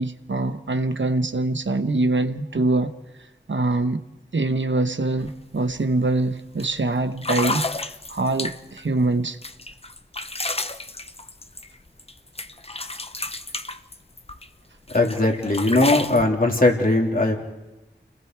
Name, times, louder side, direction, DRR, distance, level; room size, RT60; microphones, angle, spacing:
voice 1, 0.0-2.9 3.5-4.0 4.3-7.7 8.1-9.4, right 2 dB, 80° right, 1.1 m, -23 dB
sound 1, 5.2-5.3 5.7-6.0 6.6-6.7 7.2-8.8 9.4-12.1 12.4-14.5 14.9-16.2, left 2 dB, 30° left, 0.8 m, -30 dB
voice 2, 14.9-17.4, left 2 dB, 50° left, 3.3 m, -19 dB
29.5 x 19.5 x 4.7 m
wide cardioid pair, 45°, 19 cm